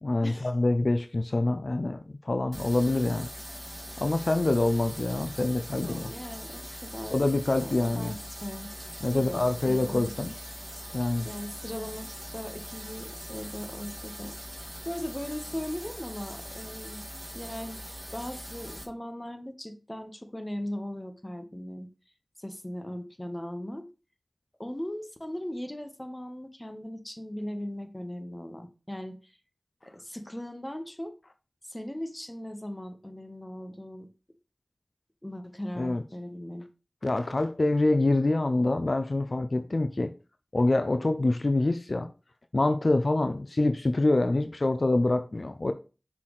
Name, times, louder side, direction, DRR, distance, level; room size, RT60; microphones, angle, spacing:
voice 1, 0.0-3.3 4.0-6.1 7.1-8.1 9.0-10.3 10.9-11.3 35.8-36.0 37.0-40.1 40.5-42.1 42.5-45.7, left 2 dB, 60° left, 0.5 m, -26 dB
sound 1, 2.5-18.8, equal, 10° right, 1.9 m, -42 dB
voice 2, 5.8-7.3 7.6-8.7 9.1-10.1 11.2-17.1 17.3-17.8 18.1-21.9 22.4-23.9 24.6-29.3 29.8-31.2 31.6-34.1 35.2-36.7, left 1 dB, 20° left, 1.1 m, -38 dB
5.9 x 5.8 x 3.1 m
wide cardioid pair, 40°, 0 cm